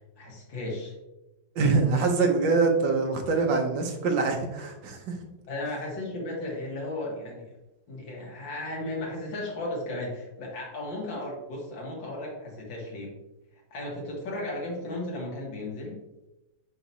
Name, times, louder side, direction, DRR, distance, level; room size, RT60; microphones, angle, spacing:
voice 1, 0.2-0.9 5.5-7.5 7.9-13.1 13.7-16.0, left 1 dB, 85° left, -2 dB, 2.4 m, -35 dB
voice 2, 1.5-5.2, right 4 dB, 75° right, 3 dB, 1.6 m, -24 dB
5.9 x 5.8 x 2.8 m, 0.98 s
omnidirectional pair, 2.0 m